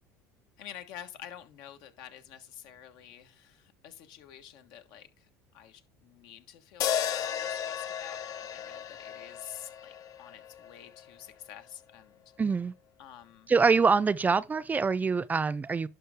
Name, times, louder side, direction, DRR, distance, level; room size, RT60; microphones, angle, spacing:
voice 1, 0.6-12.2 13.0-13.5, left 10 dB, 70° left, 1.4 m, -49 dB
sound 1, 6.8-11.1, left 9 dB, 55° left, 0.7 m, -34 dB
voice 2, 12.4-12.7 13.5-15.9, right 5 dB, 20° right, 0.5 m, -25 dB
11.5 x 5.3 x 3.7 m
supercardioid pair, 100°, 7 cm